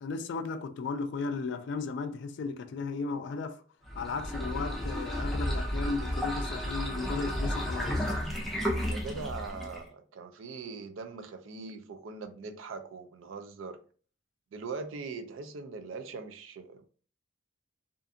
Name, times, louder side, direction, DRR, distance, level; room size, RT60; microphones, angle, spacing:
voice 1, 0.0-3.6 4.0-8.1, left 4 dB, 65° left, 0.3 m, -35 dB
sound 1, 3.8-9.9, equal, ahead, 0.6 m, -32 dB
voice 2, 8.9-13.8 14.5-16.8, right 4 dB, 85° right, 0.4 m, -41 dB
2.5 x 2.4 x 2.5 m
head